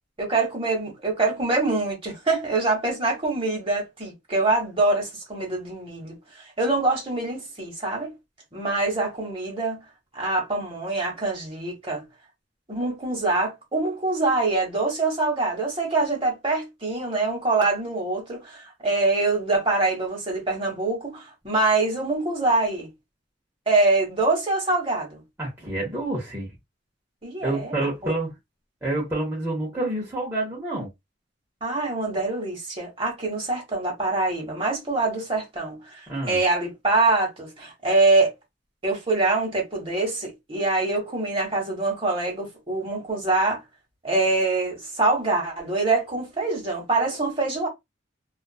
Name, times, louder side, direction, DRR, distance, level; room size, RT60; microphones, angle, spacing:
voice 1, 0.2-8.1 8.5-9.8 10.1-12.0 12.7-22.9 23.7-25.2 27.2-27.7 28.0-28.1 31.6-38.3 38.8-43.6 44.0-47.7, right 3 dB, 30° right, 1.2 m, -24 dB
voice 2, 25.4-26.5 27.4-28.3 28.8-30.9 36.1-36.4, right 2 dB, 10° right, 1.0 m, -28 dB
2.4 x 2.3 x 2.3 m
head